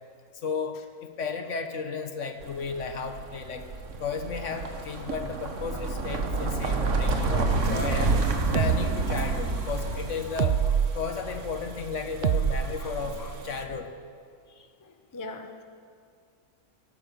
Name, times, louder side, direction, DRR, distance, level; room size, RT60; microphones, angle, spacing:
voice 1, 0.4-3.7 4.0-8.2 8.5-10.6 10.9-13.9, left 5 dB, 60° left, 7 dB, 1.2 m, -34 dB
sound 1, 2.4-13.6, right 3 dB, 55° right, 1.4 m, -30 dB
voice 2, 7.2-8.4 8.7-8.8 9.2-9.8 10.3-10.5 12.8-13.3 14.8-15.6, left 3 dB, 20° left, 6 dB, 0.6 m, -45 dB
sound 2, 8.5-8.8 10.4-10.9 12.2-13.4, right 9 dB, 90° right, 0.5 m, -25 dB
18.0 x 9.6 x 6.5 m, 2.2 s
omnidirectional pair, 1.6 m